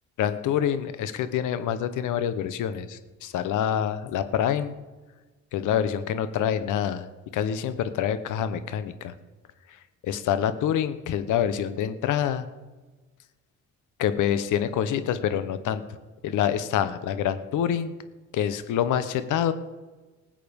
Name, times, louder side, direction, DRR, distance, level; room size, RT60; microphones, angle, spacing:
voice 1, 0.2-4.7 5.5-7.1 7.3-9.1 9.7-12.5 14.0-15.8 16.2-17.9 18.3-19.5, left 9 dB, 85° left, 12 dB, 1.0 m, -26 dB
19.5 x 7.7 x 5.3 m, 1.2 s
cardioid pair, 90°, 30 cm